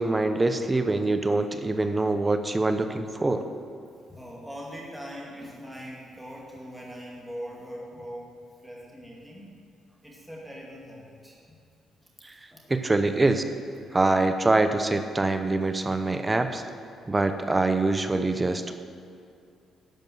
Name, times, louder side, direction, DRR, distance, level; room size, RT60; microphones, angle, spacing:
voice 1, 0.0-3.4 12.2-12.3 12.7-13.4 13.9-16.6 17.1-18.8, right 2 dB, 20° right, 8 dB, 0.7 m, -24 dB
voice 2, 4.1-9.6 10.0-11.6 12.0-12.9 13.8-14.0, equal, 5° right, -4 dB, 2.1 m, -42 dB
12.0 x 5.3 x 7.7 m, 2.4 s
cardioid pair, 90°, 0 cm